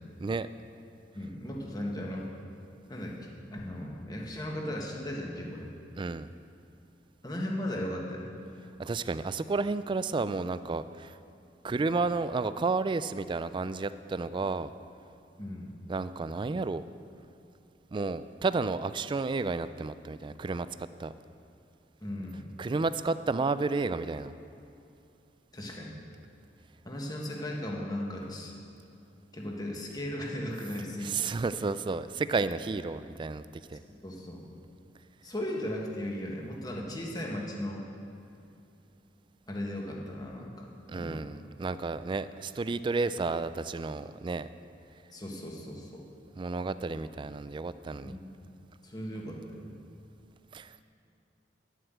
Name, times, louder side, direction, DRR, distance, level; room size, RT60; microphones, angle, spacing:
voice 1, 1.1-2.3 2.9-5.7 7.2-8.4 11.7-11.8 15.4-15.7 22.0-22.5 25.5-26.0 26.8-28.5 29.3-31.3 34.0-34.5 35.2-37.9 39.5-40.7 40.9-41.2 45.1-46.0 48.0-48.2 48.8-49.7, left 1 dB, 20° left, -1 dB, 1.5 m, -37 dB
voice 2, 6.0-6.3 8.8-11.2 11.6-14.7 15.9-16.8 17.9-21.1 22.6-24.3 31.0-33.4 33.7-33.8 40.9-44.5 46.4-48.1 50.5-50.8, right 3 dB, 25° right, 13 dB, 0.3 m, -31 dB
11.0 x 7.8 x 7.9 m, 2.7 s
head